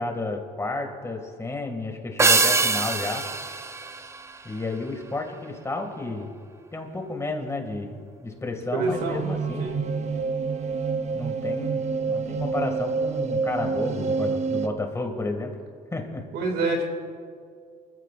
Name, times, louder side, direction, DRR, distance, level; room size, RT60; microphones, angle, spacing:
voice 1, 0.0-3.2 4.4-6.3 6.7-9.7 11.1-15.6 15.9-16.2, left 2 dB, 15° left, 3 dB, 2.2 m, -32 dB
sound 1, 2.2-4.8, right 3 dB, 15° right, 0.5 m, -24 dB
voice 2, 8.7-9.2 9.6-9.8 16.3-16.9, right 2 dB, 75° right, 3 dB, 2.5 m, -26 dB
sound 2, 8.9-14.7, right 4 dB, 40° right, 0.8 m, -27 dB
26.0 x 15.0 x 2.5 m, 2.2 s
cardioid pair, 110°, 17 cm